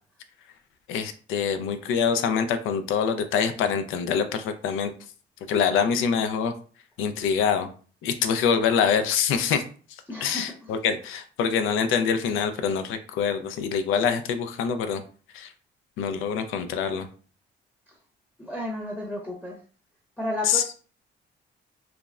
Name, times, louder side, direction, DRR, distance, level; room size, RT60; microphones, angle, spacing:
voice 1, 0.9-4.9 5.5-6.5 7.0-7.7 8.0-9.6 10.2-15.0 15.3-15.5 16.0-17.1 20.5-20.6, left 7 dB, 90° left, 8 dB, 0.4 m, -25 dB
voice 2, 10.1-10.7 18.4-19.6 20.2-20.7, left 1 dB, 5° left, -1 dB, 0.7 m, -33 dB
3.3 x 2.0 x 2.3 m, 0.40 s
cardioid pair, 90°, 20 cm